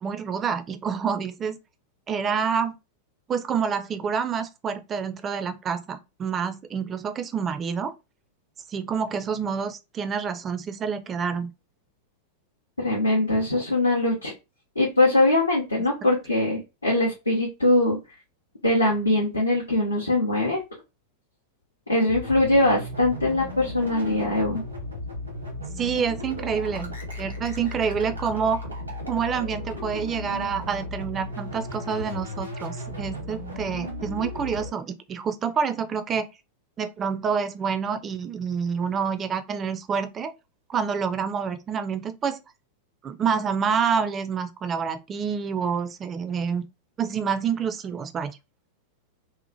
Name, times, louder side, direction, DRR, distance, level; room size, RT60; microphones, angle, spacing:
voice 1, 0.0-1.6 2.1-2.8 3.3-7.9 8.7-11.5 25.8-28.6 29.1-36.3 36.8-40.3 40.7-42.4 43.0-46.7 47.0-48.4, right 6 dB, 25° right, 0.3 m, -27 dB
voice 2, 12.8-14.3 14.8-18.0 18.6-20.6 21.9-24.6, left 2 dB, 80° left, 0.7 m, -22 dB
sound 1, 22.1-34.7, left 1 dB, 85° right, 0.9 m, -35 dB
2.8 x 2.1 x 2.7 m
figure-of-eight pair, 90°, 0 cm